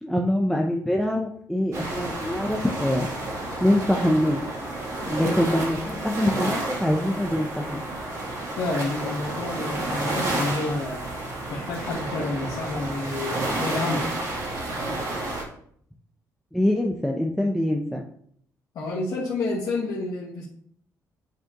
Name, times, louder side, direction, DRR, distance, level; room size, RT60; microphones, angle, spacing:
voice 1, 0.0-3.1 3.6-4.4 5.1-7.8 16.5-18.0, left 1 dB, ahead, 0 dB, 0.5 m, -24 dB
sound 1, 1.7-15.4, right 2 dB, 55° right, 2.0 m, -30 dB
voice 2, 8.6-11.1 11.5-14.1 18.7-20.4, left 2 dB, 60° left, -4 dB, 1.2 m, -30 dB
9.0 x 4.8 x 2.9 m, 0.63 s
cardioid pair, 160°, 7 cm